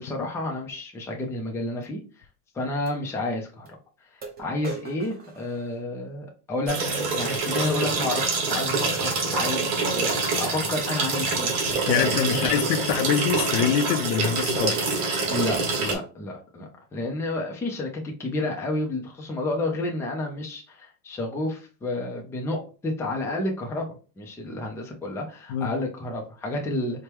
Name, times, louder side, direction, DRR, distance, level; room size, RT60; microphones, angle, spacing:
voice 1, 0.0-2.3 2.5-3.7 4.1-6.8 7.1-11.6 11.9-12.6 15.3-27.0, left 2 dB, 5° left, 0.4 m, -30 dB
sound 1, 1.8-1.9 2.9-3.0 3.7-3.8 4.2-6.2 7.8-8.0 8.9-9.1 9.9-10.0 10.4-10.5 10.8-11.1 11.7-11.9, right 4 dB, 20° right, 0.9 m, -41 dB
sound 2, 6.7-16.0, right 4 dB, 60° right, 1.5 m, -26 dB
voice 2, 11.9-14.8 25.5-25.7, left 9 dB, 70° left, 0.6 m, -24 dB
4.5 x 2.1 x 3.3 m
cardioid pair, 155°, 43 cm